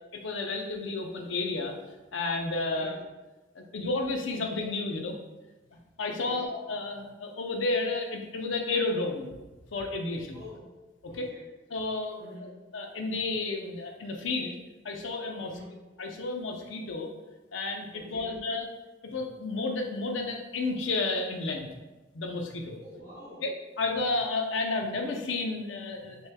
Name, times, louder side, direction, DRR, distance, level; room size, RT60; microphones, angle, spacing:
voice 1, 0.2-1.7 2.1-3.0 3.6-5.2 6.0-9.4 9.7-10.4 11.0-11.3 11.7-14.6 14.8-15.5 16.0-17.1 17.5-18.7 19.0-21.7 22.1-22.8 23.4-26.2, left 3 dB, 75° left, 3 dB, 0.6 m, -31 dB
voice 2, 2.6-3.0 6.0-6.5 10.3-10.8 11.1-11.5 12.2-12.6 15.4-15.8 17.9-18.4 22.8-23.5, equal, 15° right, -10 dB, 1.2 m, -47 dB
6.3 x 3.1 x 2.2 m, 1.1 s
head